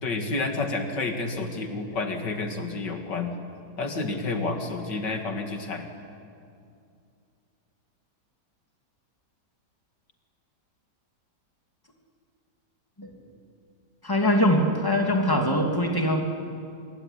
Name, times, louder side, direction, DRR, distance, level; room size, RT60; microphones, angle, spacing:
voice 1, 0.0-3.3 3.8-5.9, left 3 dB, 85° left, 5 dB, 3.0 m, -30 dB
voice 2, 14.0-16.2, equal, 10° left, 2 dB, 2.8 m, -22 dB
26.0 x 22.5 x 9.9 m, 2.4 s
omnidirectional pair, 1.8 m